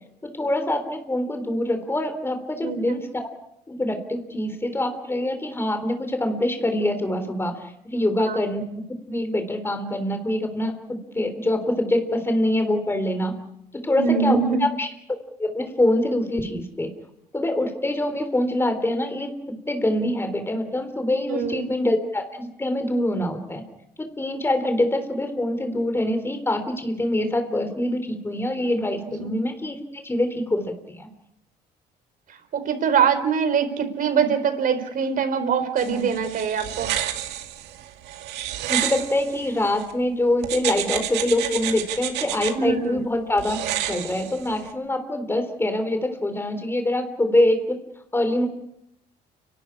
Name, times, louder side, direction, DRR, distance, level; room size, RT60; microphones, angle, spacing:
voice 1, 0.2-3.3 3.7-10.7 11.1-13.3 13.8-14.9 15.4-16.9 17.3-23.6 24.0-31.1 38.7-43.6 43.9-47.8 48.1-48.5, left 1 dB, 15° left, 7 dB, 3.7 m, -24 dB
voice 2, 2.6-3.0 8.3-8.4 14.0-14.6 21.3-21.7 29.2-29.3 32.3-36.9 42.5-43.0, right 6 dB, 55° right, 8 dB, 4.5 m, -23 dB
sound 1, 35.8-39.9 40.4-42.5 43.4-44.7, right 12 dB, 90° right, 2.3 m, -30 dB
30.0 x 12.5 x 9.9 m, 0.79 s
cardioid pair, 110°, 17 cm